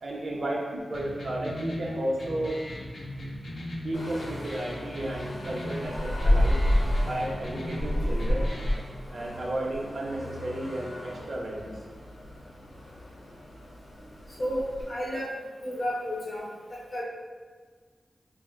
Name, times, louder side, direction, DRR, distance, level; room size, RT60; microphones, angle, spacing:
voice 1, 0.0-2.6 3.8-6.6 7.0-8.5 9.1-11.8, right 1 dB, 50° right, -2 dB, 0.6 m, -33 dB
sound 1, 0.9-8.9, left 1 dB, 50° left, 0.5 m, -39 dB
sound 2, 3.9-14.9, left 1 dB, 70° left, 0.8 m, -30 dB
voice 2, 14.4-15.3 15.6-16.4 16.7-17.0, equal, 35° left, -6 dB, 1.1 m, -32 dB
4.3 x 2.0 x 2.3 m, 1.5 s
wide cardioid pair, 110°, 0 cm